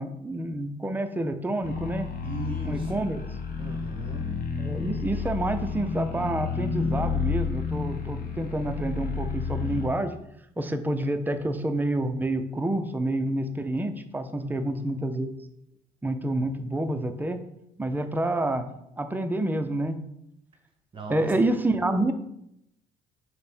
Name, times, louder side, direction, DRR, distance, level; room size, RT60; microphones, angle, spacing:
voice 1, 0.0-2.1 2.6-3.2 4.6-10.1 10.6-15.3 16.0-17.4 17.8-18.7 19.0-20.0 21.1-22.1, right 1 dB, 10° right, 8 dB, 0.4 m, -28 dB
sound 1, 1.6-9.9, left 5 dB, 55° left, 0.7 m, -31 dB
voice 2, 2.2-2.9 3.6-4.2 14.4-14.9 20.9-21.3, right 3 dB, 30° right, 2 dB, 0.8 m, -37 dB
5.1 x 2.1 x 4.3 m, 0.77 s
cardioid pair, 110°, 17 cm